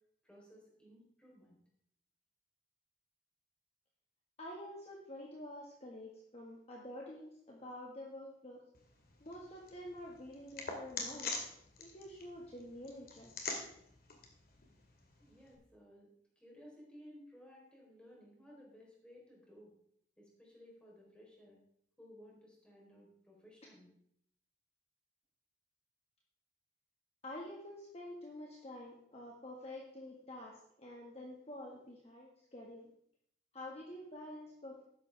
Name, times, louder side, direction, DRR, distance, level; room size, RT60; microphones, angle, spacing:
voice 1, 0.2-1.6 15.2-19.7 20.2-21.6 22.0-23.9, equal, 5° left, -3 dB, 3.7 m, -58 dB
voice 2, 4.4-8.6 9.2-11.4 11.8-13.3 27.2-32.9 33.5-34.8, left 1 dB, 35° left, -2 dB, 1.6 m, -48 dB
sound 1, 8.7-15.5, left 4 dB, 55° left, 2.1 m, -46 dB
12.5 x 10.0 x 3.4 m, 0.70 s
head